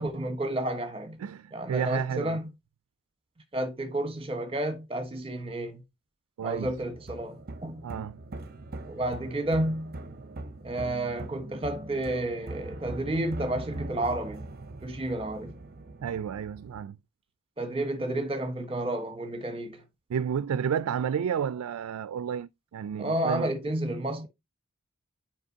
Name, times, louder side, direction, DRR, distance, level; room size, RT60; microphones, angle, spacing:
voice 1, 0.0-1.2 1.5-2.5 3.5-5.8 6.4-7.9 8.9-10.0 10.6-14.5 14.8-15.6 17.6-19.8 23.0-24.3, right 1 dB, 25° right, 1.1 m, -31 dB
voice 2, 1.2-2.4 6.4-6.7 7.8-8.2 16.0-17.0 20.1-23.5, right 8 dB, 90° right, 0.3 m, -31 dB
sound 1, 6.5-16.8, right 2 dB, 45° right, 0.6 m, -41 dB
8.8 x 5.0 x 2.7 m
head